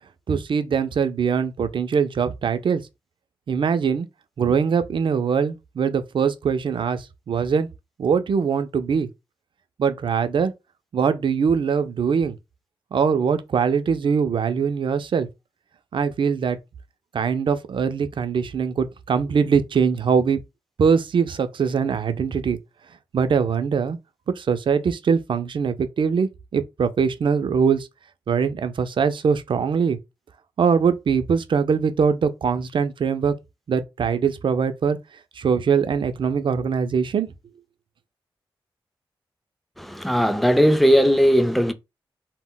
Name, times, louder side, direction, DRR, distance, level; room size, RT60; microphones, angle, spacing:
voice 1, 0.3-2.8 3.5-4.1 4.4-7.7 8.0-9.1 9.8-10.5 10.9-12.4 12.9-15.3 15.9-16.6 17.1-20.4 20.8-22.6 23.1-24.0 24.4-27.9 28.3-30.0 30.6-33.3 33.7-35.0 35.4-37.3, right 6 dB, 60° right, 0.4 m, -22 dB
voice 2, 39.8-41.7, equal, ahead, 0.4 m, -18 dB
2.1 x 2.0 x 3.6 m
cardioid pair, 55°, 9 cm